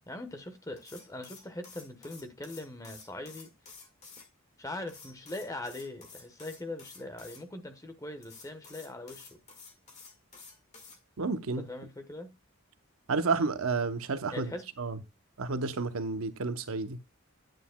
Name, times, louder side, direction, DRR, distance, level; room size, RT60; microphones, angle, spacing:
voice 1, 0.1-3.5 4.6-9.4 11.6-12.3 14.3-14.6, left 2 dB, 15° left, 1.1 m, -41 dB
sound 1, 0.8-4.3 4.9-7.4 8.2-11.0, left 4 dB, 35° left, 1.8 m, -51 dB
voice 2, 11.2-11.7 13.1-14.5 14.8-15.0 15.4-17.0, right 4 dB, 80° right, 0.8 m, -31 dB
9.2 x 9.2 x 2.2 m
head